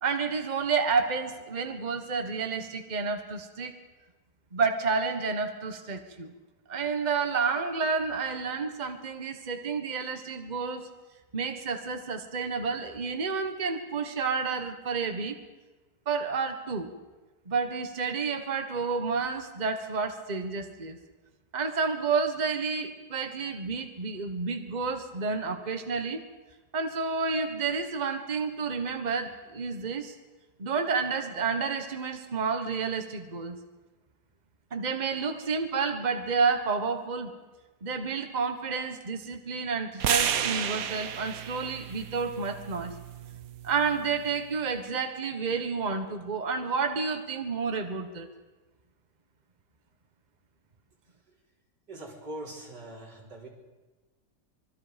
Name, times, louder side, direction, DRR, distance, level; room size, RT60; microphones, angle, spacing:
voice 1, 0.0-3.7 4.5-6.3 6.7-10.9 11.3-15.3 16.1-16.9 17.5-21.0 21.5-26.2 26.7-30.1 30.6-33.6 34.7-37.3 37.8-42.9 43.6-48.3, right 5 dB, 25° right, 6 dB, 1.5 m, -30 dB
sound 1, 40.0-44.2, right 9 dB, 60° right, 1.2 m, -32 dB
voice 2, 51.9-53.5, right 1 dB, 90° right, -2 dB, 4.8 m, -42 dB
25.5 x 23.0 x 5.3 m, 1.2 s
omnidirectional pair, 1.8 m